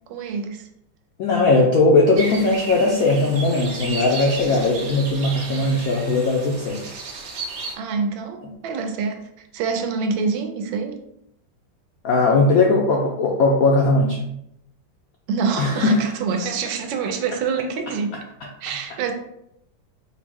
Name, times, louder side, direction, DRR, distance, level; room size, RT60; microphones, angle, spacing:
voice 1, 0.1-0.7 7.8-11.0 15.3-18.2 18.6-19.1, right 5 dB, 80° right, 5 dB, 1.3 m, -26 dB
voice 2, 1.2-6.8 12.0-14.2 15.6-16.0, left 2 dB, 80° left, -1 dB, 0.7 m, -18 dB
sound 1, 2.2-7.8, right 3 dB, 65° right, 0.9 m, -34 dB
4.7 x 2.0 x 3.5 m, 0.78 s
omnidirectional pair, 2.0 m